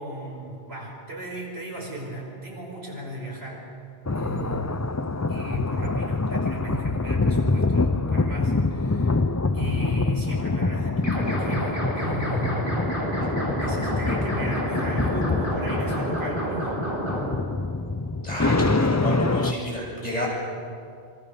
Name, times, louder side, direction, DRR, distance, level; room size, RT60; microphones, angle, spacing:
voice 1, 0.0-3.7 4.1-4.7 5.3-9.2 9.5-12.9 13.4-16.7, right 1 dB, 80° right, -1 dB, 5.8 m, -36 dB
sound 1, 4.1-19.5, left 3 dB, 20° left, 0.5 m, -25 dB
sound 2, 11.0-17.3, right 1 dB, 55° left, 7.0 m, -29 dB
voice 2, 18.2-20.3, equal, 40° left, -3 dB, 7.6 m, -30 dB
27.0 x 25.0 x 7.0 m, 2.4 s
omnidirectional pair, 1.0 m